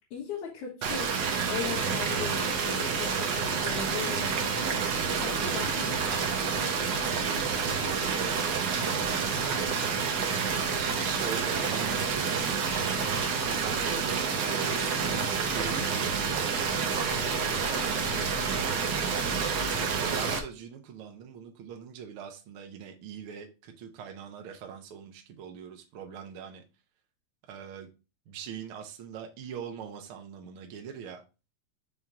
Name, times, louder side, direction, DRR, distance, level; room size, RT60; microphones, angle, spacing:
voice 1, 0.1-1.1 1.5-4.8 5.2-6.1, left 7 dB, 80° left, 2.8 m, -38 dB
sound 1, 0.8-20.4, right 5 dB, 85° right, 0.9 m, -29 dB
voice 2, 7.0-9.0 10.1-13.2 13.5-15.0 15.4-26.6 27.5-27.9 28.3-31.2, right 7 dB, 65° right, 1.4 m, -42 dB
6.1 x 3.8 x 4.0 m
omnidirectional pair, 3.4 m